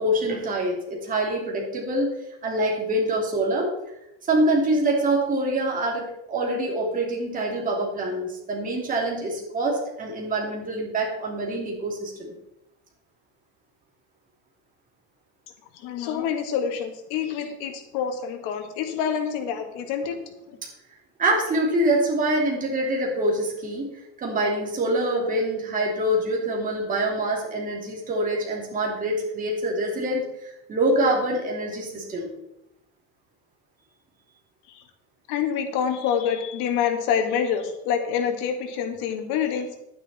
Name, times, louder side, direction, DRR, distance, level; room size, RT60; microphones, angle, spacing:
voice 1, 0.0-2.2 2.4-3.7 4.3-12.3 21.2-23.9 24.2-32.3, right 1 dB, 25° right, -1 dB, 2.8 m, -25 dB
voice 2, 15.7-20.2 20.5-20.6 34.7-34.8 35.3-39.7, left 8 dB, 65° left, 5 dB, 2.0 m, -27 dB
11.0 x 9.9 x 4.3 m, 0.89 s
cardioid pair, 155°, 33 cm